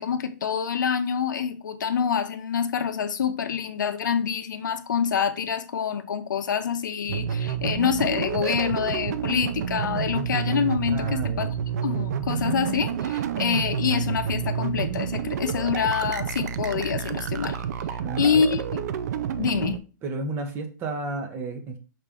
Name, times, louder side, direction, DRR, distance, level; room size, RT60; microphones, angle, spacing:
voice 1, 0.0-11.5 11.8-17.6 18.2-18.8 19.4-19.8, left 7 dB, 75° left, 0.6 m, -26 dB
sound 1, 7.1-19.8, right 8 dB, 60° right, 0.4 m, -29 dB
voice 2, 10.9-11.5 18.0-18.5 20.0-21.8, right 2 dB, 20° right, 0.7 m, -32 dB
5.8 x 2.5 x 3.4 m
hypercardioid pair, 145°, 10 cm